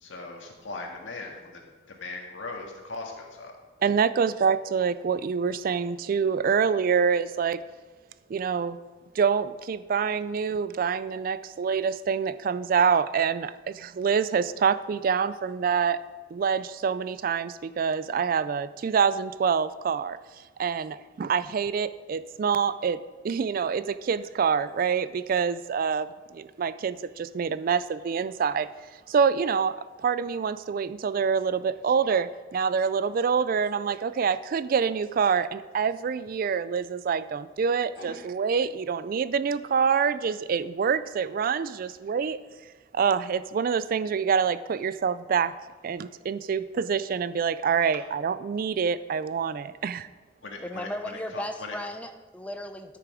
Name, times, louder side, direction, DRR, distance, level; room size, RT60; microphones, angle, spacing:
voice 1, 0.0-1.3 2.0-3.5 38.0-38.1 50.4-50.9, left 3 dB, 85° left, 1 dB, 1.8 m, -38 dB
voice 2, 3.8-7.6 8.3-8.8 9.2-16.0 16.3-20.2 20.6-23.0 23.2-26.1 26.3-28.7 29.1-29.8 30.0-42.4 42.9-45.5 45.8-50.1, right 6 dB, 50° right, 15 dB, 0.3 m, -26 dB
voice 3, 50.6-53.0, left 1 dB, 5° left, 6 dB, 0.7 m, -36 dB
12.5 x 6.8 x 4.9 m, 1.4 s
head